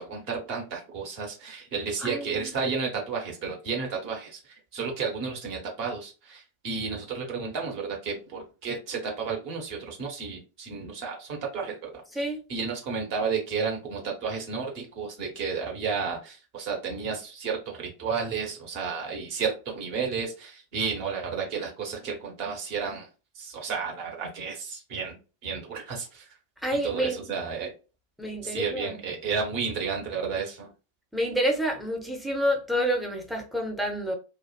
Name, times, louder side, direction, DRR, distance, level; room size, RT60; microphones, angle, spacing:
voice 1, 0.0-11.9 12.5-23.1 23.3-26.2 26.7-27.7 28.4-30.7, right 5 dB, 45° right, 1.1 m, -32 dB
voice 2, 2.0-2.5 12.1-12.4 26.6-27.2 28.2-29.0 31.1-34.2, equal, ahead, 0.7 m, -28 dB
2.4 x 2.3 x 2.3 m
figure-of-eight pair, 90°, 0 cm